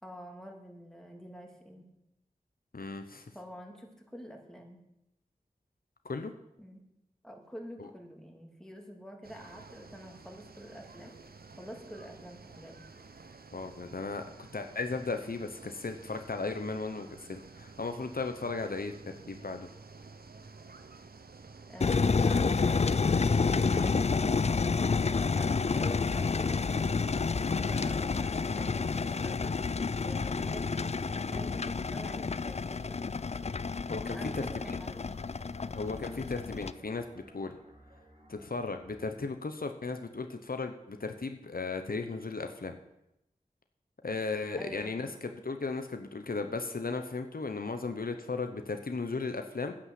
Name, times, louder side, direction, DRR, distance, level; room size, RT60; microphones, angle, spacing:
voice 1, 0.0-1.9 3.3-4.8 6.6-6.9 7.2-11.2 11.6-12.9 21.7-23.0 25.3-33.0 34.1-35.1 44.5-45.1, equal, 5° left, 1 dB, 2.6 m, -47 dB
voice 2, 2.7-3.3 6.0-6.3 7.8-7.9 13.5-14.2 14.5-18.9 19.3-19.7 23.7-23.9 33.9-34.8 35.7-37.6 38.3-42.8 44.0-49.7, left 3 dB, 70° left, 6 dB, 1.0 m, -36 dB
sound 1, 9.2-24.0, right 4 dB, 75° right, 0.9 m, -51 dB
sound 2, 21.8-36.7, left 4 dB, 45° left, 0.4 m, -29 dB
sound 3, 33.2-39.2, right 1 dB, 40° right, 2.8 m, -58 dB
10.0 x 8.8 x 7.6 m, 0.86 s
wide cardioid pair, 45°, 16 cm